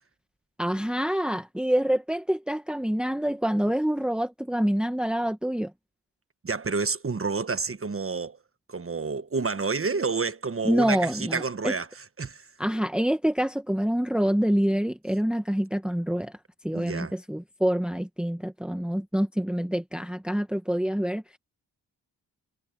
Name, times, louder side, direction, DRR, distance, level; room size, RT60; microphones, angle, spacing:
voice 1, 0.6-5.7 10.6-11.7 12.6-16.3 16.6-21.4, equal, ahead, 1.5 m, -26 dB
voice 2, 6.4-8.4 8.7-11.9 12.2-12.5 16.7-17.1, right 4 dB, 30° right, 1.3 m, -29 dB
cardioid pair, 55°, 43 cm